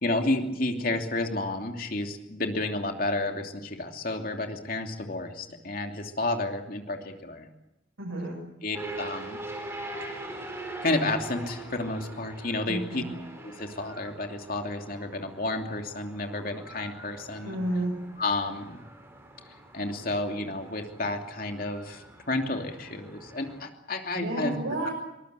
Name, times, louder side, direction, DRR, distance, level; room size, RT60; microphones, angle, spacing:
voice 1, 0.0-7.5 8.6-9.4 10.8-13.0 13.4-17.6 18.2-18.8 19.7-24.5 24.8-24.9, left 2 dB, 45° left, 4 dB, 2.8 m, -31 dB
voice 2, 8.0-8.4 12.7-13.1 17.4-17.9 24.2-24.9, right 1 dB, 90° right, -1 dB, 7.0 m, -31 dB
sound 1, 8.7-23.6, right 2 dB, 15° right, 4.7 m, -43 dB
23.5 x 21.0 x 8.2 m, 0.89 s
head